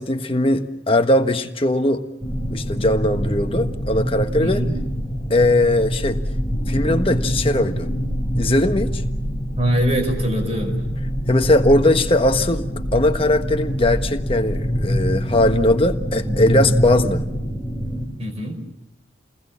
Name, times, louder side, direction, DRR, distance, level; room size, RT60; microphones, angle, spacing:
voice 1, 0.0-2.1 2.5-4.6 5.3-6.2 6.7-7.9 8.3-9.0 11.3-17.3, left 1 dB, 30° left, 1.4 m, -19 dB
sound 1, 2.2-18.0, equal, ahead, 4.4 m, -25 dB
voice 2, 4.4-4.8 9.6-10.8 18.2-18.6, equal, 30° right, 5.2 m, -23 dB
30.0 x 20.5 x 7.3 m
head